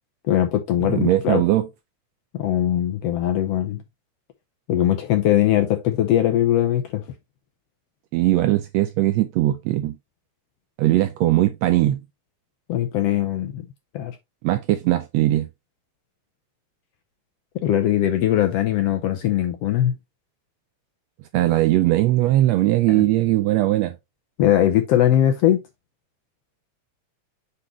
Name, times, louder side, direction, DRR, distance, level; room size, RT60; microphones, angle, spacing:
voice 1, 0.2-1.4 2.4-3.8 4.7-7.0 12.7-13.7 13.9-14.2 17.6-20.0 22.9-23.0 24.4-25.6, left 12 dB, 75° left, 1.5 m, -20 dB
voice 2, 0.9-1.7 8.1-10.0 10.8-12.0 14.4-15.5 21.3-23.9, right 15 dB, 80° right, 1.5 m, -19 dB
7.7 x 4.1 x 3.1 m
omnidirectional pair, 3.5 m